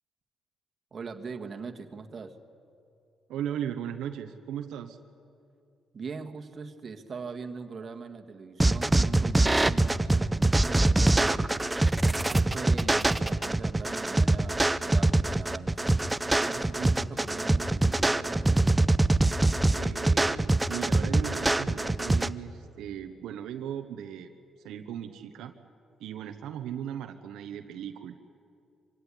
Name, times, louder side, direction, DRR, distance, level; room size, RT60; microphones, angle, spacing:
voice 1, 0.9-2.4 5.9-11.5 12.1-15.9 16.4-18.7, right 5 dB, 45° right, 5 dB, 1.7 m, -41 dB
voice 2, 3.3-5.0 19.8-24.3 24.6-25.5 26.0-28.2, right 9 dB, 85° right, 6 dB, 1.0 m, -37 dB
sound 1, 8.6-22.3, right 2 dB, 15° right, 0.6 m, -24 dB
24.5 x 17.5 x 9.9 m, 2.5 s
cardioid pair, 90°, 0 cm